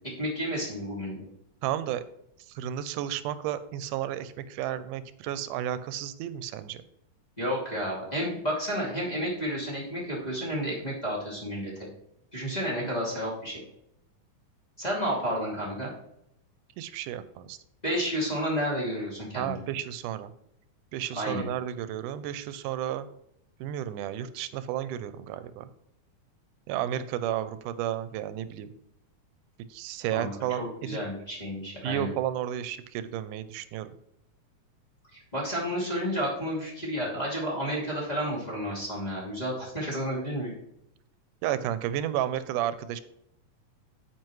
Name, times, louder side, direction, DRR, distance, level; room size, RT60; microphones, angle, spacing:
voice 1, 0.2-1.2 7.4-11.9 12.3-13.6 14.8-15.9 17.8-19.6 21.2-21.5 30.1-30.3 30.6-32.1 35.1-40.5, equal, 15° left, -6 dB, 2.2 m, -31 dB
voice 2, 1.6-2.0 2.5-6.8 16.8-17.6 19.4-20.3 20.9-23.1 23.6-25.7 26.7-28.7 29.7-31.0 31.8-33.9 41.4-43.0, right 11 dB, 90° right, 13 dB, 2.1 m, -32 dB
9.1 x 7.8 x 3.1 m, 0.77 s
omnidirectional pair, 3.6 m